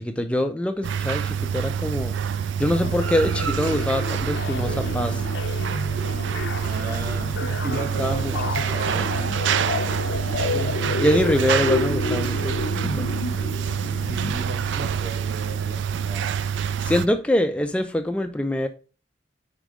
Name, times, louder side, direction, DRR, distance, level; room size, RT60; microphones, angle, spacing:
voice 1, 0.0-2.2 2.6-5.2 8.0-8.3 10.5-13.1 16.8-18.7, left 1 dB, 5° left, 0.3 m, -24 dB
sound 1, 0.8-17.1, right 7 dB, 75° right, 0.3 m, -26 dB
sound 2, 2.7-14.3, left 4 dB, 75° left, 0.6 m, -30 dB
voice 2, 6.6-9.1 9.7-10.5 13.8-16.4, right 3 dB, 50° right, 1.3 m, -36 dB
4.8 x 4.4 x 5.1 m
head